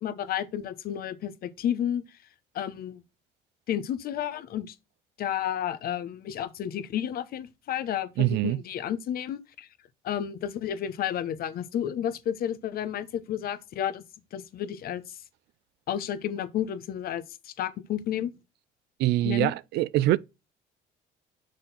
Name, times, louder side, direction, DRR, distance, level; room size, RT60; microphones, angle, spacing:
voice 1, 0.0-2.0 2.5-3.0 3.7-4.7 5.2-9.7 10.0-14.0 14.3-15.0 15.9-18.3 19.2-19.5, left 10 dB, 60° left, 0.9 m, -31 dB
voice 2, 8.2-8.6 19.0-20.2, right 15 dB, 80° right, 0.4 m, -24 dB
6.2 x 4.3 x 4.0 m
cardioid pair, 110°, 17 cm